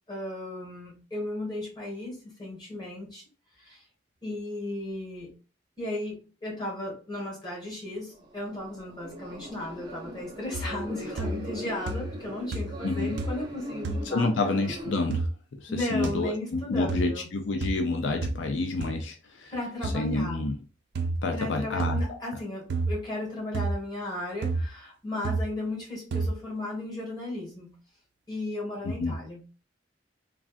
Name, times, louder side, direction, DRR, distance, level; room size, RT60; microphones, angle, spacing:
voice 1, 0.1-3.2 4.2-5.3 5.8-14.3 15.7-17.3 19.5-20.4 21.3-27.7 28.3-29.5, left 1 dB, 20° left, 1.5 m, -35 dB
sound 1, 8.1-15.0, equal, 25° right, 0.6 m, -40 dB
sound 2, 10.5-10.9 11.2-11.6 11.9-12.3 12.5-12.9 13.2-13.5 13.8-14.1 15.1-15.3 16.0-16.1 16.9-17.1 17.6-17.8 18.2-18.4 18.8-18.9 19.8-20.0 21.0-21.2 21.8-22.1 22.7-23.0 23.5-23.8 24.4-24.7 25.2-25.5 26.1-26.4, right 3 dB, 65° right, 0.4 m, -30 dB
voice 2, 12.8-13.2 14.1-19.5 19.8-20.5 21.2-22.0 28.8-29.2, left 2 dB, 85° left, 0.5 m, -29 dB
3.3 x 2.3 x 2.4 m
head